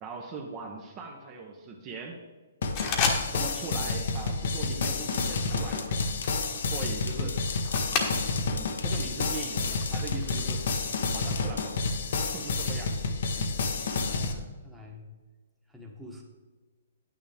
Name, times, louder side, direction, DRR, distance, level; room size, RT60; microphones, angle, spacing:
voice 1, 0.0-2.2 3.3-6.2 6.7-7.4 8.5-10.7 11.1-11.8 12.2-13.0 13.4-13.5, right 4 dB, 25° right, 1 dB, 1.0 m, -40 dB
sound 1, 2.6-14.3, left 3 dB, 60° left, 1.1 m, -30 dB
sound 2, 2.7-3.7 3.9-4.3 4.8-8.6 8.9-10.4, left 5 dB, 30° left, 1.3 m, -34 dB
sound 3, 4.9-11.8, left 5 dB, 80° left, 0.8 m, -41 dB
voice 2, 13.9-15.1 15.7-16.2, left 2 dB, ahead, -2 dB, 1.3 m, -47 dB
9.4 x 8.9 x 3.5 m, 1.3 s
hypercardioid pair, 155°, 0 cm